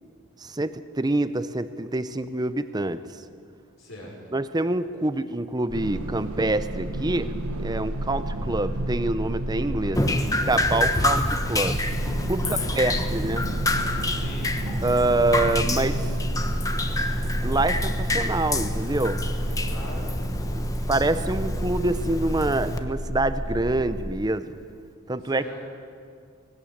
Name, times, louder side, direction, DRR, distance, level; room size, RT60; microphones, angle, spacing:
voice 1, 0.4-3.0 4.3-7.3 7.6-10.1 10.5-11.8 12.3-12.4 12.8-13.5 14.8-16.1 17.4-19.2 20.6-24.6 25.1-25.6, right 2 dB, 20° right, 12 dB, 0.7 m, -26 dB
voice 2, 3.8-4.2 9.8-10.3 12.3-13.1 14.1-14.5 19.7-20.7 25.2-25.6, left 1 dB, 65° left, -9 dB, 5.1 m, -41 dB
sound 1, 5.7-24.1, right 1 dB, 85° right, 1.3 m, -31 dB
Drip, 9.9-22.8, left 1 dB, 15° left, 1.1 m, -28 dB
19.0 x 18.0 x 8.8 m, 2.2 s
head